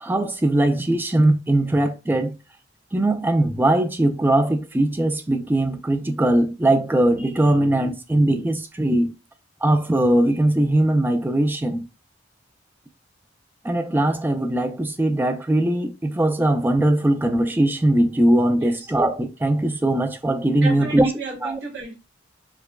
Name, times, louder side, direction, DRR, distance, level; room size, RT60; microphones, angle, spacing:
voice 1, 0.0-2.3 2.9-9.1 9.6-11.9 13.6-21.1 21.4-21.5, right 1 dB, 10° right, 0.4 m, -20 dB
voice 2, 20.6-21.9, right 3 dB, 65° right, 1.4 m, -32 dB
4.7 x 2.2 x 2.2 m
head